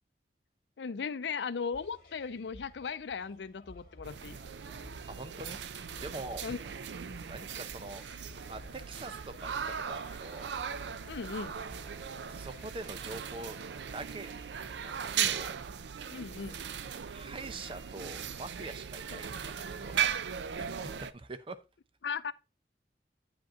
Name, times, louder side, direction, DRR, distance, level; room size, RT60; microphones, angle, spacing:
voice 1, 0.8-4.4 6.4-6.6 11.1-11.5 15.2-15.4 16.1-16.6 19.1-19.2 22.0-22.3, left 5 dB, 85° left, 0.5 m, -37 dB
sound 1, 1.7-12.7, left 1 dB, 55° left, 2.0 m, -55 dB
sound 2, 4.0-21.1, right 8 dB, 85° right, 0.5 m, -38 dB
voice 2, 5.1-5.6 6.0-6.4 7.2-8.0 8.5-10.5 12.3-13.6 13.9-14.3 14.8-15.5 17.0-20.1 20.6-21.6, right 2 dB, 30° right, 0.7 m, -44 dB
Wind instrument woodwind instrument, 10.9-15.0, right 1 dB, 50° right, 3.9 m, -58 dB
9.2 x 5.2 x 3.7 m
head